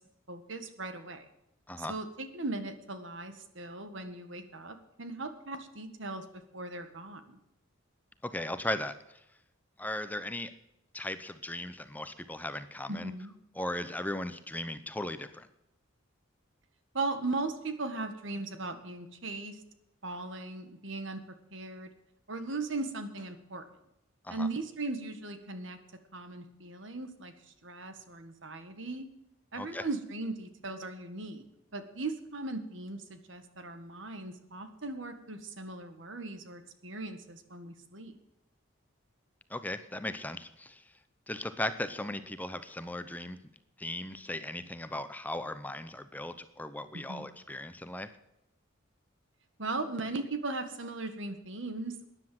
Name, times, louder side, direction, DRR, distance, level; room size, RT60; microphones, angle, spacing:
voice 1, 0.3-1.3 1.8-7.4 12.9-13.3 16.9-19.6 20.0-21.2 21.5-21.9 22.3-23.6 24.3-25.8 26.1-29.1 29.5-31.5 31.7-38.2 47.1-47.3 49.6-52.1, right 3 dB, 65° right, 9 dB, 1.8 m, -38 dB
voice 2, 8.2-9.2 9.8-10.5 10.9-13.1 13.5-15.5 24.2-24.5 29.5-29.9 39.5-40.8 41.3-43.4 43.8-48.1, left 1 dB, 10° left, 11 dB, 0.7 m, -37 dB
13.5 x 10.0 x 7.7 m, 0.86 s
head